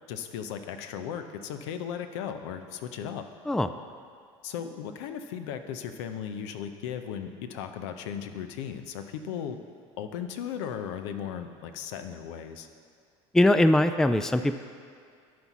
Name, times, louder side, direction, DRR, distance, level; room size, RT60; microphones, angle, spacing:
voice 1, 0.1-3.2 4.4-9.6 10.0-12.7, left 8 dB, 80° left, 8 dB, 0.7 m, -36 dB
voice 2, 13.3-14.6, left 1 dB, 5° left, 10 dB, 0.3 m, -21 dB
12.0 x 4.2 x 6.0 m, 2.3 s
supercardioid pair, 85°, 15 cm